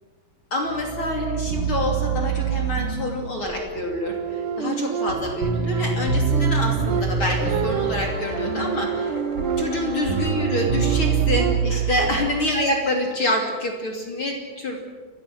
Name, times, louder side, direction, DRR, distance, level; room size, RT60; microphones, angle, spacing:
voice 1, 0.5-9.1 9.6-14.8, left 1 dB, 35° left, 1 dB, 3.3 m, -26 dB
sound 1, 0.7-12.8, right 6 dB, 40° right, 2.1 m, -26 dB
sound 2, 4.0-5.5 6.1-10.1 10.6-12.1, right 8 dB, 70° right, 2.0 m, -30 dB
sound 3, 6.7-10.5 11.0-11.1 11.6-11.9, left 1 dB, 20° left, 5.0 m, -39 dB
30.0 x 22.5 x 6.2 m, 1.5 s
omnidirectional pair, 4.5 m